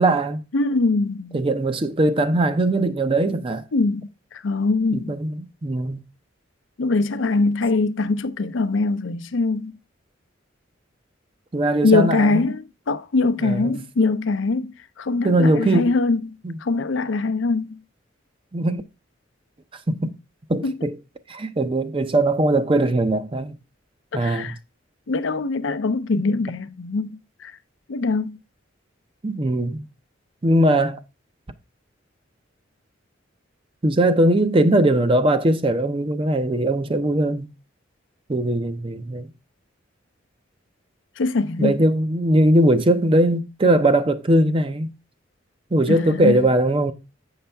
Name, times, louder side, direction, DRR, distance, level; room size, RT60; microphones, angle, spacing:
voice 1, 0.0-0.4 1.3-3.6 4.9-6.0 11.5-12.4 13.4-13.8 15.2-15.9 16.4-16.6 18.5-18.8 19.7-20.1 20.5-21.0 21.3-23.6 24.1-24.6 29.2-29.8 30.4-31.0 33.8-37.5 38.3-39.3 41.6-44.9 45.7-46.9, right 1 dB, 25° right, 0.5 m, -20 dB
voice 2, 0.5-1.4 3.7-4.1 4.4-5.1 6.8-9.7 11.8-14.7 15.0-17.8 20.6-20.8 24.2-24.5 25.1-27.2 27.4-27.5 27.9-28.3 41.2-41.7 45.9-46.4, left 3 dB, 70° left, 0.5 m, -22 dB
7.7 x 5.6 x 3.3 m
head